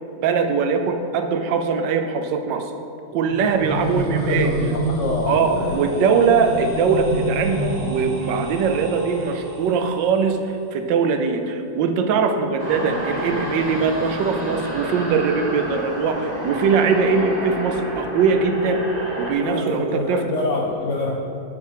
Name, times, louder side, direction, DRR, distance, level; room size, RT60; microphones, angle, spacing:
voice 1, 0.2-2.7 3.1-4.5 5.3-10.4 10.7-18.8 19.2-20.2, right 5 dB, 75° right, 6 dB, 1.3 m, -21 dB
sound 1, 3.1-10.1, right 1 dB, 40° right, 0.8 m, -28 dB
voice 2, 4.1-5.8 19.4-21.3, left 2 dB, 65° left, -2 dB, 0.7 m, -26 dB
sound 2, 12.6-19.3, equal, 25° right, 1.3 m, -30 dB
7.3 x 6.3 x 4.9 m, 2.8 s
omnidirectional pair, 2.0 m